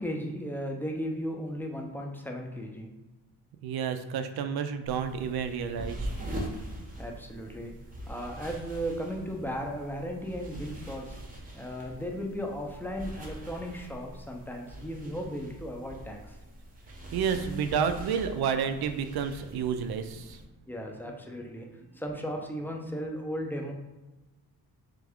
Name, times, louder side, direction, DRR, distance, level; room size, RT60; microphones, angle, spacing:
voice 1, 0.0-2.9 7.0-7.7 8.1-11.1 11.5-16.4 20.7-23.7, equal, 5° left, 1 dB, 0.5 m, -36 dB
voice 2, 3.6-6.1 17.1-20.4, right 7 dB, 85° right, 8 dB, 0.5 m, -30 dB
sound 1, 4.8-20.4, right 1 dB, 25° right, 0.7 m, -42 dB
3.6 x 3.3 x 3.5 m, 1.1 s
wide cardioid pair, 140°, 36 cm